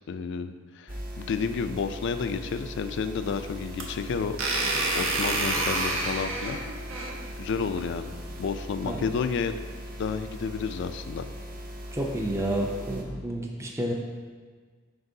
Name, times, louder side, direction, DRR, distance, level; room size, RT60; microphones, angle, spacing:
voice 1, 0.1-4.4 4.9-6.6 7.4-9.5 10.0-11.2, left 5 dB, 60° left, 10 dB, 0.3 m, -31 dB
sound 1, 0.9-13.0, equal, 45° right, 0.7 m, -40 dB
sound 2, 3.2-8.5, right 2 dB, 80° right, 0.9 m, -30 dB
voice 2, 11.9-13.9, right 1 dB, 15° right, 0 dB, 0.5 m, -30 dB
7.8 x 5.2 x 2.7 m, 1.5 s
head